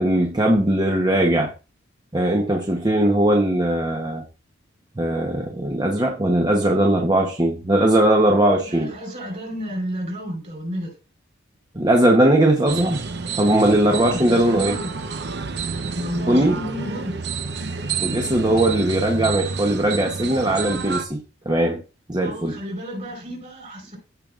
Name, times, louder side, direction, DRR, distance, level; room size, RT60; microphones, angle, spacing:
voice 1, 0.0-1.5 2.1-4.2 5.0-8.9 11.7-13.0 13.4-14.8 16.3-16.6 18.0-21.8 22.1-22.6, right 1 dB, 20° right, 0.9 m, -19 dB
voice 2, 8.6-10.9 13.9-14.9 15.9-17.3 22.2-24.0, equal, 40° right, 4.5 m, -32 dB
sound 1, 12.7-21.1, right 5 dB, 55° right, 0.8 m, -29 dB
15.0 x 5.2 x 2.5 m
head